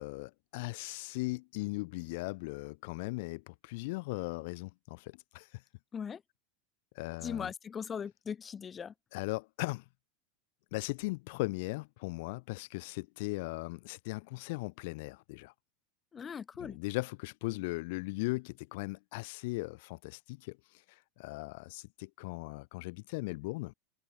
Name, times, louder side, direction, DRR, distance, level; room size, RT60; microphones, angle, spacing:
voice 1, 0.0-5.5 7.0-7.5 9.1-9.8 10.7-15.5 16.6-20.6 21.2-23.7, left 25 dB, 60° left, 2.6 m, -38 dB
voice 2, 7.2-8.9 16.1-16.8, left 7 dB, 20° left, 2.2 m, -39 dB
supercardioid pair, 150°, 0 cm